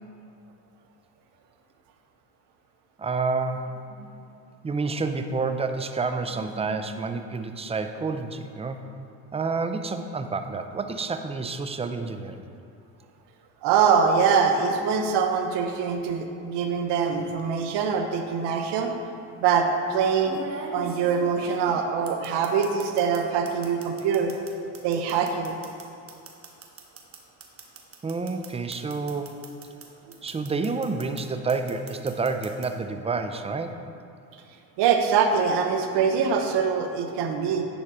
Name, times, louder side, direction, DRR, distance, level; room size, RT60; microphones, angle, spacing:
voice 1, 3.0-3.7 4.6-8.8 9.3-12.4 28.0-29.4 30.2-33.8, right 4 dB, 15° right, 7 dB, 0.5 m, -29 dB
voice 2, 13.6-18.9 19.4-20.4 20.7-24.3 24.8-25.6 34.8-37.6, right 6 dB, 65° right, 5 dB, 1.0 m, -24 dB
sound 1, 17.0-17.4 18.6-18.7 20.2-23.2 23.5-29.9 30.1-31.2 31.5-32.7, right 4 dB, 30° right, 1.2 m, -41 dB
10.0 x 4.3 x 4.9 m, 2.5 s
supercardioid pair, 80°, 44 cm